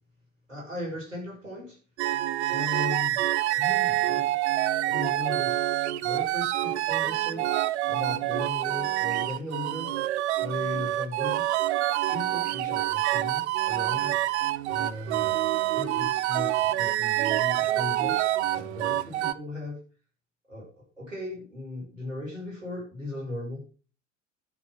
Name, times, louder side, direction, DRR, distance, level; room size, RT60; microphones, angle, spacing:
voice 1, 0.5-1.8 2.5-3.3 3.5-4.3 4.8-5.6 6.0-9.9 10.4-11.5 12.1-14.1 14.7-15.4 15.7-19.8 20.5-23.7, left 2 dB, 90° right, -3 dB, 6.2 m, -37 dB
sound 1, 2.0-19.3, right 14 dB, 60° right, 0.7 m, -27 dB
11.5 x 6.2 x 6.3 m, 0.38 s
figure-of-eight pair, 75°, 38 cm